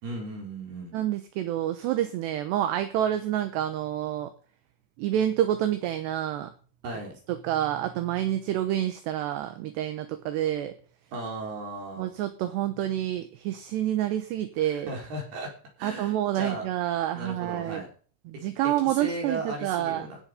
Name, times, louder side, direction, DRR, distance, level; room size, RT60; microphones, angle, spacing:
voice 1, 0.0-0.9 6.8-7.2 11.1-12.1 14.6-15.5 15.8-16.7 17.2-17.9 18.8-20.2, right 2 dB, 50° right, 0 dB, 5.7 m, -36 dB
voice 2, 0.9-4.3 5.0-6.5 7.3-10.7 12.0-14.9 15.8-17.8 18.3-20.1, right 12 dB, 75° right, 9 dB, 2.7 m, -28 dB
17.0 x 8.0 x 5.2 m, 0.41 s
omnidirectional pair, 5.9 m